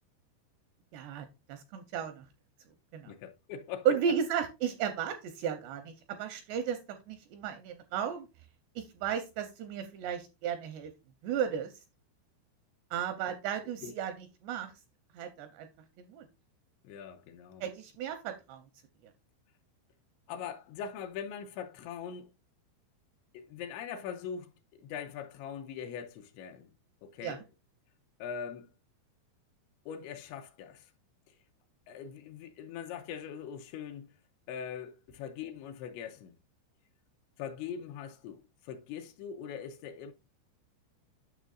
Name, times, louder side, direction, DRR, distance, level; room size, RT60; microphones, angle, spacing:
voice 1, 0.9-2.3 2.9-3.1 3.9-6.8 7.1-8.3 8.8-10.9 11.2-11.7 12.9-14.7 15.1-15.7 16.0-16.3 17.6-18.6 27.2-27.4, right 8 dB, 85° right, 2.5 m, -34 dB
voice 2, 3.1-4.2 13.8-13.9 16.8-17.6 20.3-22.3 23.3-26.7 27.0-27.5 28.2-28.7 29.9-30.9 31.3-31.4 31.9-34.1 34.5-36.3 37.4-40.1, left 7 dB, 85° left, 2.7 m, -42 dB
9.3 x 6.4 x 2.4 m
omnidirectional pair, 5.5 m